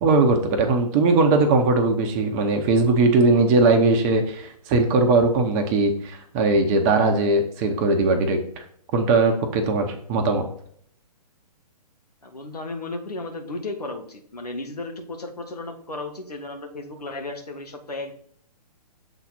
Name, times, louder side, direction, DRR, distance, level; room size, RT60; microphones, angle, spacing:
voice 1, 0.0-8.6 8.9-10.4, right 3 dB, 25° right, 5 dB, 0.8 m, -20 dB
voice 2, 12.2-18.1, left 2 dB, 75° left, 4 dB, 1.4 m, -34 dB
7.2 x 4.1 x 4.1 m, 0.62 s
figure-of-eight pair, 125°, 20 cm